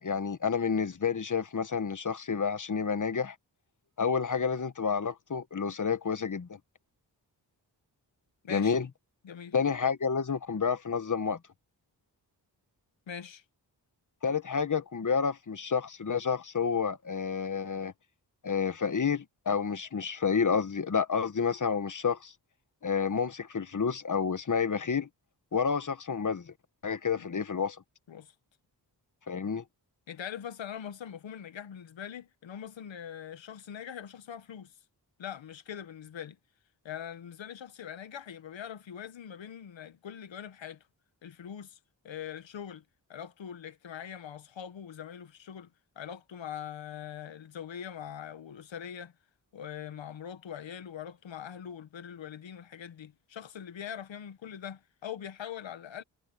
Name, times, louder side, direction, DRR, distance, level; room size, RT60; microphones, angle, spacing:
voice 1, 0.0-3.3 4.0-6.6 8.5-8.9 9.5-11.4 14.2-17.9 18.4-22.3 22.8-25.1 25.5-26.5 26.8-27.8 29.3-29.6, left 6 dB, 45° left, 1.5 m, -29 dB
voice 2, 8.4-8.8 9.2-9.5 13.1-13.4 27.1-27.3 28.1-28.3 30.1-34.8 35.2-36.4 36.8-40.8 41.2-41.8 42.0-42.8 43.1-45.7 45.9-49.1 49.5-56.0, left 9 dB, 90° left, 1.4 m, -42 dB
cardioid pair, 50°, 44 cm